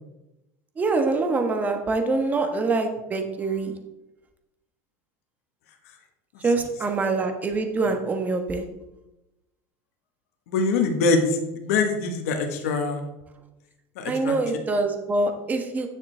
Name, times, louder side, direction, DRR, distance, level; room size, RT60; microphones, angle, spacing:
voice 1, 0.8-3.7 6.4-8.6 14.1-15.9, right 3 dB, 20° right, 5 dB, 1.2 m, -25 dB
voice 2, 10.5-13.0 14.0-14.4, left 3 dB, 85° left, 4 dB, 1.4 m, -24 dB
9.7 x 6.5 x 3.3 m, 0.95 s
supercardioid pair, 130°, 8 cm